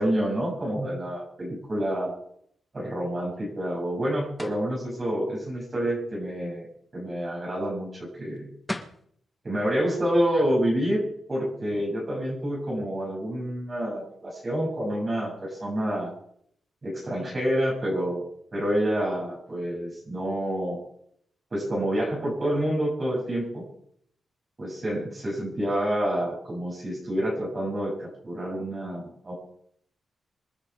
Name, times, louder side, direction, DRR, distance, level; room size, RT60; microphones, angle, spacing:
voice 1, 0.0-2.2 2.7-6.7 6.9-8.5 9.4-11.0 11.3-16.1 16.8-20.8 21.5-23.6 24.6-29.3, equal, 25° right, -4 dB, 7.2 m, -28 dB
sound 1, 4.4-4.7 8.3-8.4 8.7-9.0, left 1 dB, 5° left, 1.4 m, -34 dB
26.5 x 9.8 x 4.8 m, 0.68 s
wide cardioid pair, 170°, 0 cm